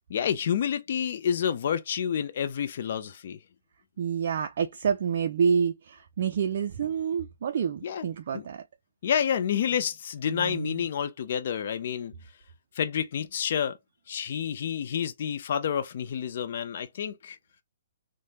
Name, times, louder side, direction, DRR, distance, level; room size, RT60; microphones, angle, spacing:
voice 1, 0.1-3.4 7.8-8.1 8.3-8.4 9.0-12.1 12.7-13.8 14.1-17.4, left 8 dB, 55° left, 0.4 m, -29 dB
voice 2, 4.0-8.6 10.3-10.8, right 7 dB, 55° right, 0.3 m, -28 dB
3.2 x 2.1 x 2.7 m
hypercardioid pair, 135°, 0 cm